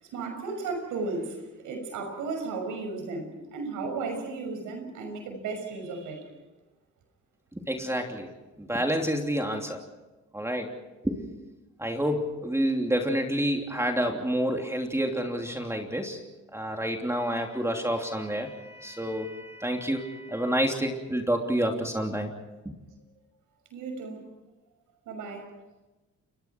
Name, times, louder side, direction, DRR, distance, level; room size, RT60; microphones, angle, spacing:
voice 1, 0.0-6.3 23.7-24.3 25.1-25.5, right 3 dB, 90° right, 6.3 m, -34 dB
voice 2, 7.5-8.3 8.6-9.8 10.3-10.8 11.0-11.2 11.8-16.2 16.5-22.3 22.6-22.7, equal, 10° right, 3.0 m, -28 dB
29.5 x 23.0 x 4.7 m
cardioid pair, 90°, 30 cm